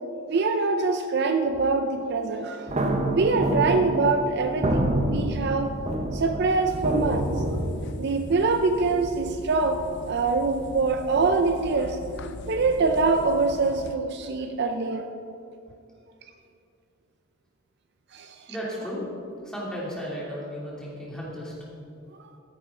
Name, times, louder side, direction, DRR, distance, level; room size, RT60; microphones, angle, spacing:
voice 1, 0.3-2.8 3.1-5.7 6.1-7.4 8.0-12.0 12.5-15.1 18.1-18.6, right 3 dB, 50° right, 7 dB, 0.5 m, -24 dB
sound 1, 2.7-7.7, right 1 dB, 30° right, 0.9 m, -27 dB
sound 2, 6.7-14.0, left 3 dB, 55° left, 0.5 m, -41 dB
voice 2, 18.5-19.1 19.4-21.5, equal, 5° left, -7 dB, 2.9 m, -34 dB
13.5 x 10.5 x 3.8 m, 2.6 s
head